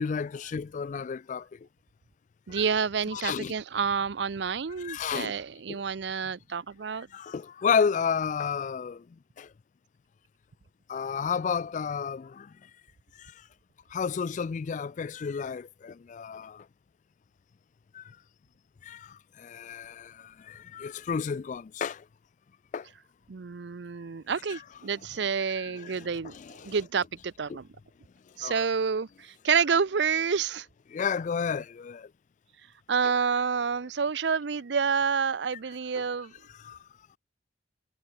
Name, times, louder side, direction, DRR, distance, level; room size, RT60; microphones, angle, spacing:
voice 1, 0.0-1.4 2.5-2.7 3.1-3.5 4.8-5.3 5.7-5.8 7.1-9.0 9.4-9.5 10.9-12.5 13.9-16.6 17.9-18.0 18.9-19.1 19.4-20.1 20.5-22.0 22.7-22.8 24.5-24.8 25.6-26.1 26.3-26.9 27.5-27.6 28.4-28.7 29.5-29.6 30.9-32.1 33.0-33.1 36.6-36.8, left 6 dB, 40° left, 0.3 m, -31 dB
voice 2, 2.5-7.1 23.3-27.7 28.4-30.7 32.9-36.3, right 6 dB, 65° right, 0.6 m, -29 dB
head